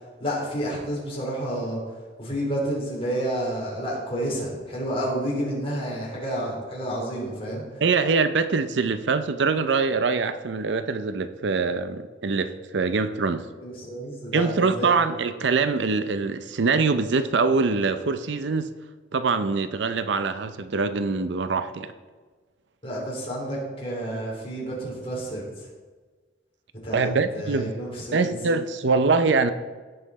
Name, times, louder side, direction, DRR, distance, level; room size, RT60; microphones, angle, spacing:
voice 1, 0.2-1.8 2.2-7.6 13.6-14.9 22.8-25.5 26.8-28.3, right 1 dB, 30° left, -4 dB, 3.7 m, -30 dB
voice 2, 7.8-13.4 14.3-18.7 19.1-21.9 26.9-27.7 28.1-29.5, right 4 dB, 70° right, 11 dB, 0.6 m, -24 dB
16.5 x 5.7 x 4.2 m, 1.4 s
head